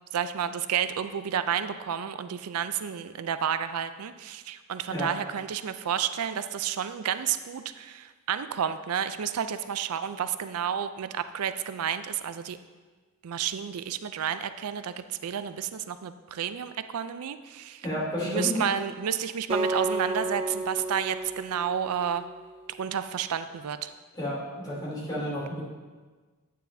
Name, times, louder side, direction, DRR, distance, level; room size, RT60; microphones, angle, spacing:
voice 1, 0.1-12.6 13.2-17.9 18.2-22.2 22.8-23.9, right 8 dB, 90° right, 11 dB, 0.4 m, -31 dB
voice 2, 17.8-18.6 24.1-25.6, equal, 20° left, -8 dB, 2.9 m, -31 dB
Acoustic guitar, 19.5-22.7, right 2 dB, 25° right, 0.4 m, -32 dB
9.1 x 9.1 x 2.7 m, 1.4 s
head